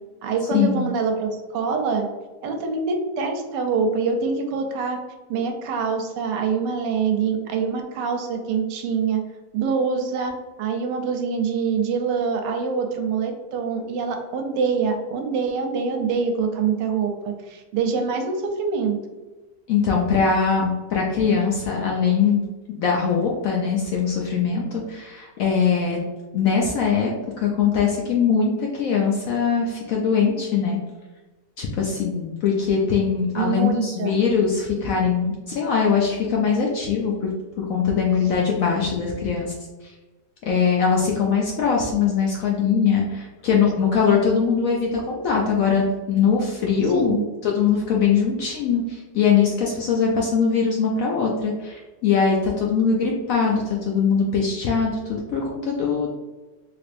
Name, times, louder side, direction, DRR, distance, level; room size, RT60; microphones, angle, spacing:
voice 1, 0.2-2.1 2.4-5.0 5.3-9.3 9.5-10.3 10.6-19.0 33.4-34.2 46.9-47.3, right 5 dB, 85° right, 4 dB, 1.2 m, -25 dB
voice 2, 19.7-22.4 22.7-26.0 26.3-30.8 31.6-37.3 37.6-39.5 39.8-39.9 40.5-56.1, left 6 dB, 70° left, -2 dB, 0.8 m, -21 dB
3.3 x 3.1 x 2.5 m, 1.2 s
omnidirectional pair, 1.9 m